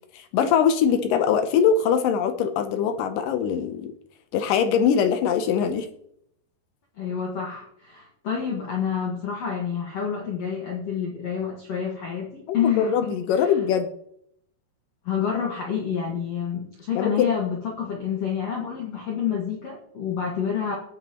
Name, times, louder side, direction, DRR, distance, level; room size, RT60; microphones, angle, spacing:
voice 1, 0.1-3.9 4.3-5.9 12.6-13.9 17.0-17.3, left 7 dB, 75° left, 8 dB, 2.0 m, -22 dB
voice 2, 7.0-13.5 15.0-20.8, left 7 dB, 55° left, -1 dB, 2.0 m, -28 dB
18.5 x 9.3 x 3.0 m, 0.71 s
omnidirectional pair, 4.7 m